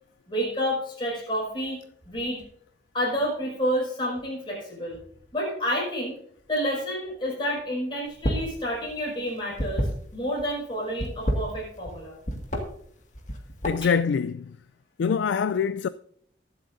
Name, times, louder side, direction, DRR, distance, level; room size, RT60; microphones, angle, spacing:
voice 1, 0.3-2.4 2.9-5.0 5.3-6.2 6.5-12.1 13.8-13.9, equal, 25° left, 5.9 m, -29 dB
sound 1, 8.1-8.5 8.8-10.4 10.9-12.0 12.2-12.6 13.1-14.0, equal, 40° left, 1.9 m, -28 dB
voice 2, 13.6-14.6 15.0-15.9, left 6 dB, 75° left, 0.3 m, -24 dB
22.5 x 7.8 x 2.6 m
head